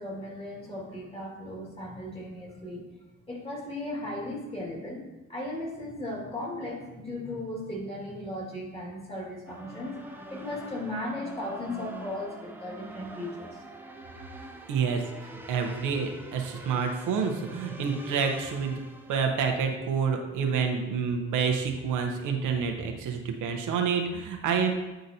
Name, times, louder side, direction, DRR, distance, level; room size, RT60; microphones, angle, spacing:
voice 1, 0.0-2.8 3.3-5.0 5.3-13.6, left 1 dB, 20° left, -2 dB, 2.0 m, -36 dB
sound 1, 9.5-19.6, right 1 dB, 5° right, 0.6 m, -45 dB
voice 2, 14.7-18.8 19.1-24.7, right 6 dB, 80° right, 3 dB, 0.9 m, -28 dB
9.1 x 3.9 x 2.7 m, 1.1 s
cardioid pair, 90°, 30 cm